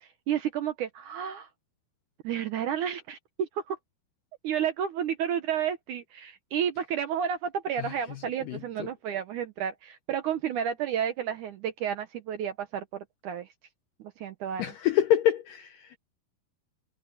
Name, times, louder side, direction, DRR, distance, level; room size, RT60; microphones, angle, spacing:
voice 1, 0.0-1.5 2.2-3.8 4.4-13.5 14.0-14.7, right 8 dB, 70° right, 2.0 m, -31 dB
voice 2, 7.8-8.9 14.6-16.0, left 11 dB, 80° left, 1.9 m, -27 dB
omnidirectional pair, 4.7 m